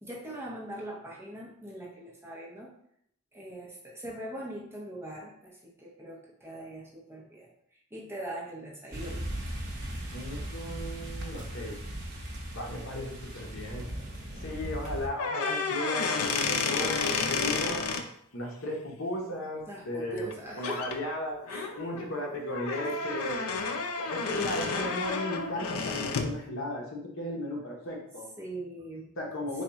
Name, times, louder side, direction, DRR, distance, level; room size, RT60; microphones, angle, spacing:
voice 1, 0.0-2.7 3.3-7.5 7.9-9.3 19.7-20.8 21.5-21.7 28.4-29.1, right 1 dB, 10° right, -4 dB, 0.6 m, -41 dB
sound 1, 8.9-15.1, right 1 dB, 55° right, 0.7 m, -38 dB
voice 2, 10.1-11.8 12.5-13.9 14.3-17.8 18.3-21.4 21.7-23.4 24.0-28.3 29.2-29.6, left 1 dB, 60° left, -1 dB, 0.9 m, -35 dB
sound 2, 15.1-18.0 20.2-20.3 20.6-21.0 21.5-26.4, left 4 dB, 75° left, 0.4 m, -31 dB
3.5 x 2.3 x 4.0 m, 0.71 s
head